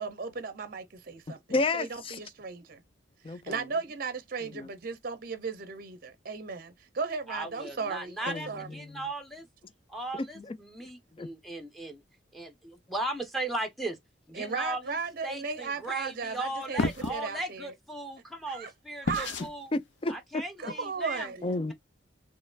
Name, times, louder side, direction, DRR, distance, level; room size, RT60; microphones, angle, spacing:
voice 1, 0.0-2.8 3.3-8.7 14.4-16.8 17.1-17.7 18.5-18.7 19.0-19.4 20.6-21.5, right 4 dB, 50° right, 0.6 m, -36 dB
voice 2, 1.3-2.2 3.2-3.6 4.5-4.7 8.3-8.5 8.8-9.0 10.4-10.6 11.2-11.3 19.7-20.1 20.6-20.7 21.4-21.7, left 2 dB, 30° left, 0.4 m, -31 dB
voice 3, 7.3-9.5 9.9-12.0 12.3-12.5 12.9-14.0 14.3-15.0 15.2-19.7 20.1-21.3, right 1 dB, ahead, 0.8 m, -37 dB
sound 1, 16.8-17.2 19.1-19.5, left 3 dB, 70° left, 0.6 m, -30 dB
4.2 x 3.1 x 2.4 m
head